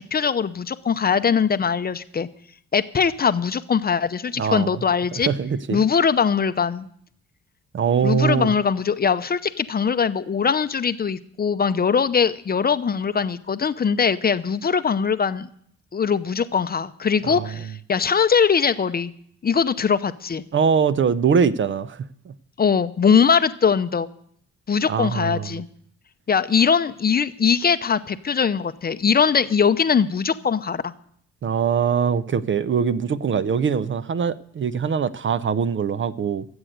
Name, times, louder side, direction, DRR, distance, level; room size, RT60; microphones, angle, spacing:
voice 1, 0.0-2.3 2.7-5.3 5.7-6.9 8.0-15.5 15.9-19.1 19.4-20.4 22.6-24.1 24.7-25.7 26.3-30.9, left 6 dB, 30° left, 0.7 m, -21 dB
voice 2, 4.4-4.8 5.3-5.8 7.7-8.5 17.2-17.5 20.5-22.3 24.9-25.6 31.4-36.5, right 6 dB, 40° right, 0.6 m, -22 dB
14.0 x 8.0 x 7.9 m
cardioid pair, 90°, 30 cm